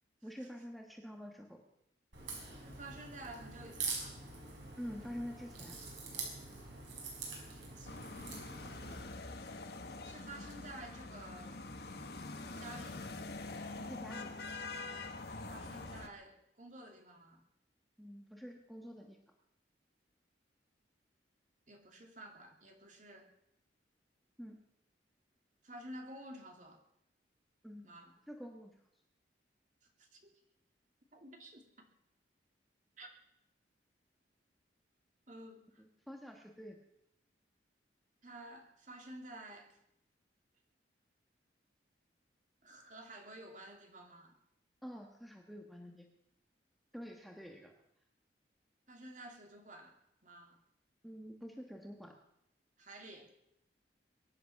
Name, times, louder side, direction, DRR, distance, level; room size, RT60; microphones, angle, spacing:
voice 1, 0.2-1.6 4.8-5.8 13.8-14.3 18.0-19.2 24.4-24.6 27.6-28.0 28.3-28.7 35.8-36.8 44.8-46.1 46.9-47.8 51.0-52.2, equal, ahead, 2 dB, 1.4 m, -47 dB
Crack, 2.1-9.0, right 4 dB, 90° right, 5.6 m, -45 dB
voice 2, 2.2-4.2 7.5-8.2 10.0-11.6 12.6-13.2 15.3-17.4 21.7-23.3 25.6-26.8 27.8-28.1 29.8-30.3 31.1-31.9 33.0-33.1 35.3-35.8 38.2-39.8 42.6-44.4 48.9-50.0 50.2-50.6 52.8-53.3, right 1 dB, 45° right, 3 dB, 2.9 m, -52 dB
sound 1, 7.8-16.1, left 3 dB, 60° left, 1.4 m, -45 dB
23.0 x 10.5 x 5.9 m, 0.78 s
head